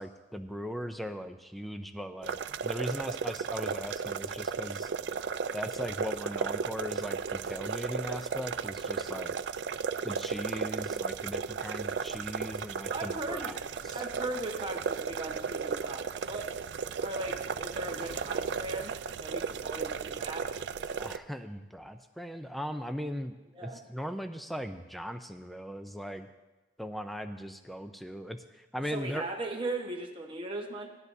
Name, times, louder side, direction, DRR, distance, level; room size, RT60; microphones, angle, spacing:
voice 1, 0.0-2.4 2.6-4.9 5.5-9.3 10.0-13.6 13.8-14.0 21.0-23.4 23.6-26.3 26.8-29.2, equal, ahead, 7 dB, 0.4 m, -39 dB
sound 1, 2.2-21.2, right 6 dB, 65° right, 0.4 m, -35 dB
voice 2, 12.9-13.6 13.9-16.5 17.0-20.5 23.5-23.8 28.8-30.9, right 2 dB, 30° right, 1 dB, 1.2 m, -38 dB
18.0 x 12.0 x 2.7 m, 1.1 s
head